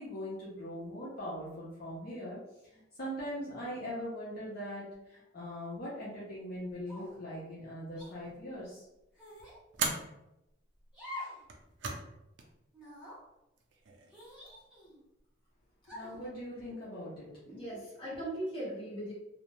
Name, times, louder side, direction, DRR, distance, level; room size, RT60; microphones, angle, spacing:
voice 1, 0.0-2.4 2.7-8.8 15.9-17.3, equal, 55° left, -8 dB, 0.8 m, -41 dB
sound 1, 6.9-7.3 8.0-8.1 9.2-9.6 10.9-11.4 11.8-11.9 12.7-13.2 14.1-15.0 15.8-16.3, left 1 dB, 5° right, 0.8 m, -46 dB
sound 2, 8.2-8.6 9.7-10.1 11.4-12.1 12.4-12.5 13.6-14.1, right 4 dB, 70° right, 0.4 m, -37 dB
voice 2, 17.4-19.1, right 1 dB, 30° left, -8 dB, 1.3 m, -39 dB
2.5 x 2.1 x 3.0 m, 0.90 s
head